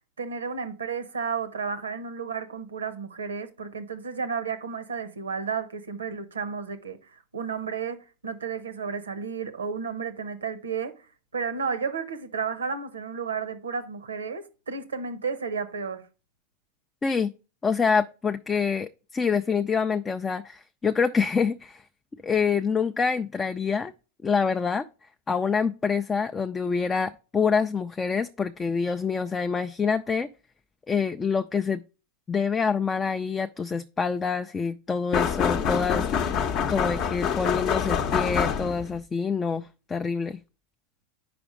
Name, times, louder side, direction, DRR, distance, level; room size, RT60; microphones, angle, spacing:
voice 1, 0.2-10.9 11.3-16.0, right 5 dB, 90° right, 0.7 m, -32 dB
voice 2, 17.0-17.3 17.6-21.8 22.2-23.9 24.2-24.9 25.3-30.3 30.9-31.8 32.3-36.3 36.7-40.4, left 5 dB, 20° left, 0.3 m, -26 dB
sound 1, 35.1-39.0, left 7 dB, 45° left, 0.7 m, -26 dB
5.0 x 5.0 x 4.9 m
hypercardioid pair, 100°, 0 cm